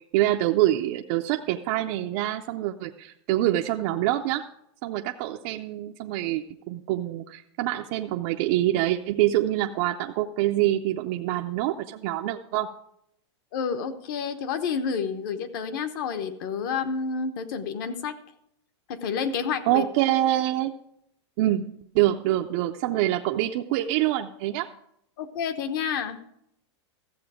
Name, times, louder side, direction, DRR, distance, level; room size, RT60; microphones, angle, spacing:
voice 1, 0.0-4.4 4.8-12.7 19.7-20.7 21.4-24.7, right 14 dB, 30° right, 3 dB, 0.4 m, -25 dB
voice 2, 13.5-18.1 18.9-19.8 25.2-26.2, left 6 dB, 45° left, 11 dB, 0.9 m, -29 dB
14.0 x 7.6 x 4.9 m, 0.76 s
supercardioid pair, 170°, 15 cm